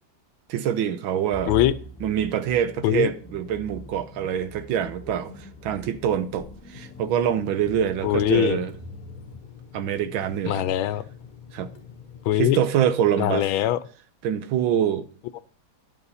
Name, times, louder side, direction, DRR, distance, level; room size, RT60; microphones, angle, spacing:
voice 1, 0.5-1.5 2.0-8.7 9.7-10.6 11.5-11.7 12.4-13.5 14.2-15.1, right 9 dB, 80° right, 1.6 m, -25 dB
sound 1, 1.3-9.4, left 1 dB, 10° left, 0.9 m, -43 dB
Water tap faucet / Sink (filling or washing), 6.7-12.3, left 7 dB, 45° left, 0.6 m, -46 dB
voice 2, 8.0-8.6 10.5-11.0 12.2-12.6 13.2-13.8, left 12 dB, 85° left, 1.4 m, -22 dB
11.0 x 8.0 x 4.1 m
omnidirectional pair, 2.2 m